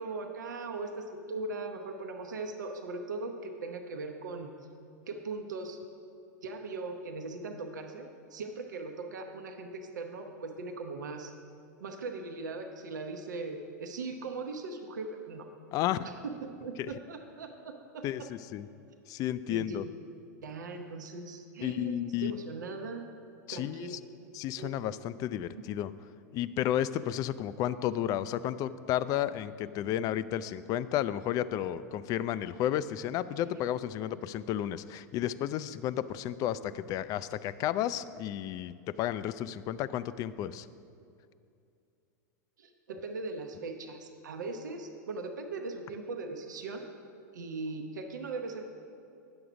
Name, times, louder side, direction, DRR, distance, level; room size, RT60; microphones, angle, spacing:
voice 1, 0.0-4.5 5.1-5.8 6.4-11.3 11.8-15.5 16.0-18.3 19.5-19.8 20.4-23.1 23.5-24.0 24.6-24.7 42.6-46.8 47.3-48.6, right 3 dB, 85° right, 4 dB, 0.8 m, -39 dB
voice 2, 15.7-16.1 16.8-16.9 18.0-18.7 19.1-19.8 21.6-22.4 23.5-24.0 24.3-25.9 26.3-40.7, left 11 dB, 40° left, 15 dB, 0.3 m, -32 dB
9.7 x 6.8 x 5.0 m, 2.5 s
hypercardioid pair, 105°, 10 cm